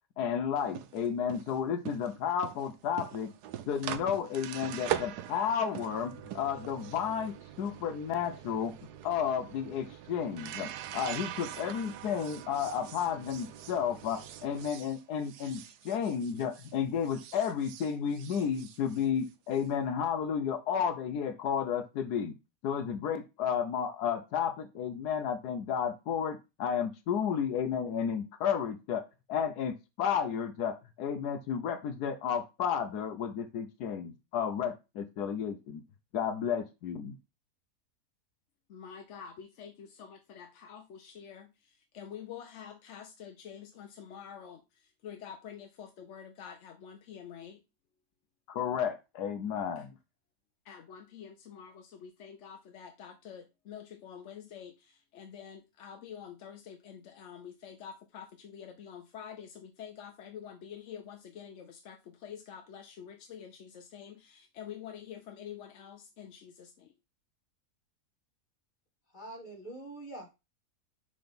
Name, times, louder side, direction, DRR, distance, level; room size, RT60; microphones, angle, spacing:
voice 1, 0.2-3.3 3.7-8.7 9.0-22.3 22.6-29.0 29.3-35.8 36.1-37.1 48.5-49.9, left 7 dB, 85° left, 1.3 m, -32 dB
sound 1, 0.6-16.8 17.0-19.6, right 11 dB, 85° right, 1.2 m, -42 dB
voice 2, 38.7-47.6 49.7-49.9 50.6-66.9, left 8 dB, 60° left, 0.9 m, -47 dB
voice 3, 69.1-70.3, right 2 dB, 30° left, 2.6 m, -44 dB
5.8 x 3.8 x 5.2 m
omnidirectional pair, 1.7 m